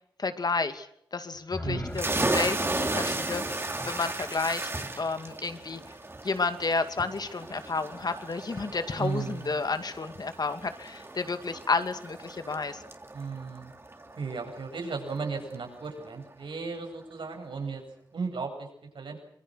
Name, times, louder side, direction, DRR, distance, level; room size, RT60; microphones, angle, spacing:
voice 1, 0.2-4.7 5.0-5.8 6.2-12.8, left 4 dB, 55° left, 9 dB, 2.4 m, -31 dB
sound 1, 1.3-5.4, left 2 dB, 20° left, 1.7 m, -43 dB
voice 2, 1.6-2.0 9.0-9.6 13.1-13.7 14.1-17.8 18.1-18.7 18.9-19.2, right 4 dB, 80° right, 2 dB, 7.9 m, -35 dB
sound 2, 1.9-15.3, right 2 dB, 30° right, 2.9 m, -35 dB
26.0 x 23.0 x 6.5 m, 0.71 s
wide cardioid pair, 75°, 8 cm